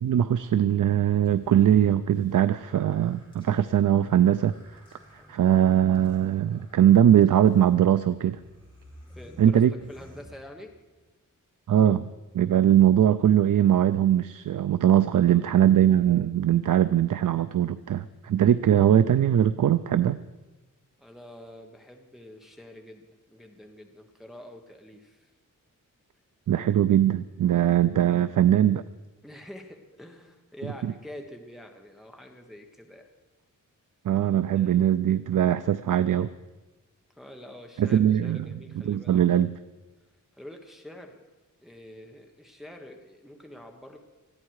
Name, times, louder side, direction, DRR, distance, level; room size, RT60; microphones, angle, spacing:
voice 1, 0.0-4.5 5.3-8.4 9.4-9.7 11.7-12.1 12.3-20.2 26.5-28.8 30.8-30.9 34.0-36.3 37.8-38.5 38.8-39.5, right 10 dB, 70° right, 13 dB, 0.5 m, -21 dB
sound 1, 1.2-10.9, equal, 15° left, 5.9 m, -52 dB
voice 2, 5.0-5.4 9.1-10.7 15.2-15.9 21.0-25.3 27.4-27.7 29.2-33.1 34.5-35.0 37.2-39.2 40.3-41.2 41.6-44.0, left 1 dB, ahead, 3 dB, 1.3 m, -46 dB
20.5 x 14.5 x 4.8 m, 1.2 s
wide cardioid pair, 160°, 33 cm